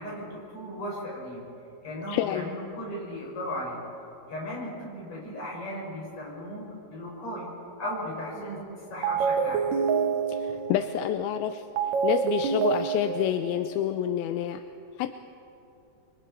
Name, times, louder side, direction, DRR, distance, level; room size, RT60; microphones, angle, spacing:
voice 1, 0.0-1.4 1.8-3.8 4.3-9.6, equal, 40° left, -4 dB, 7.0 m, -36 dB
voice 2, 2.1-2.5 10.3-11.6 12.0-14.6 15.0-15.2, left 12 dB, 80° left, 9 dB, 2.3 m, -28 dB
sound 1, 8.3-8.7 9.0-14.1, right 6 dB, 85° right, 1.6 m, -28 dB
28.5 x 24.0 x 4.5 m, 2.9 s
omnidirectional pair, 4.6 m